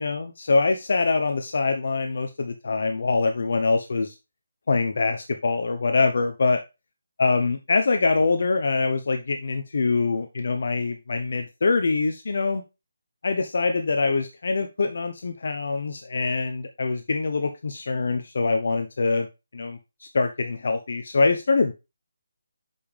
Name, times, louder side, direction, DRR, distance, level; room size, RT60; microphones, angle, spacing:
voice 1, 0.0-4.1 4.7-6.6 7.2-12.6 13.2-19.3 19.5-21.7, left 3 dB, 60° left, 6 dB, 0.8 m, -24 dB
6.9 x 5.4 x 3.3 m, 0.25 s
hypercardioid pair, 165°, 0 cm